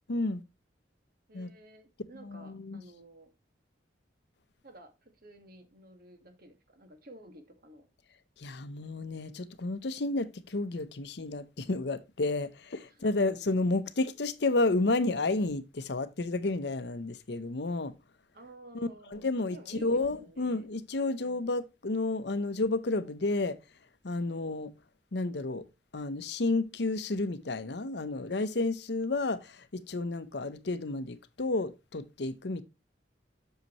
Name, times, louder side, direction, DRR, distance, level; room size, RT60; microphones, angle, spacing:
voice 1, 0.1-0.4 1.3-1.5 2.2-2.8 8.4-18.0 18.7-23.6 24.0-24.7 25.1-25.6 25.9-32.6, left 2 dB, 65° left, 0.8 m, -31 dB
voice 2, 1.3-3.3 4.6-7.9 12.9-13.2 18.3-20.7 21.1-21.4, right 1 dB, 55° right, 1.8 m, -53 dB
8.1 x 6.6 x 3.0 m
head